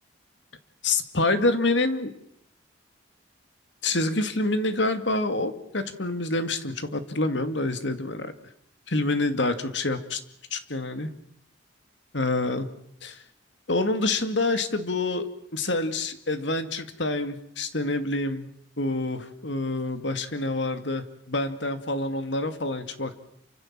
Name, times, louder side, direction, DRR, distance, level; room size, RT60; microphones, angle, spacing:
voice 1, 0.8-2.1 3.8-8.3 8.9-10.2 10.5-11.1 12.1-12.7 13.0-13.2 13.7-18.5 18.8-23.1, left 2 dB, 65° left, 9 dB, 2.3 m, -27 dB
28.5 x 25.5 x 7.5 m, 0.72 s
head